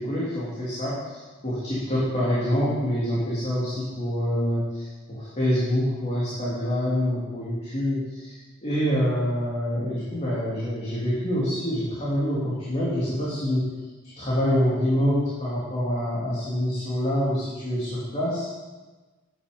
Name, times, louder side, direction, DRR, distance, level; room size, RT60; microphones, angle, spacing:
voice 1, 0.0-8.0 8.6-13.7 14.0-18.5, equal, 30° left, -8 dB, 3.0 m, -26 dB
11.5 x 10.0 x 5.3 m, 1.2 s
head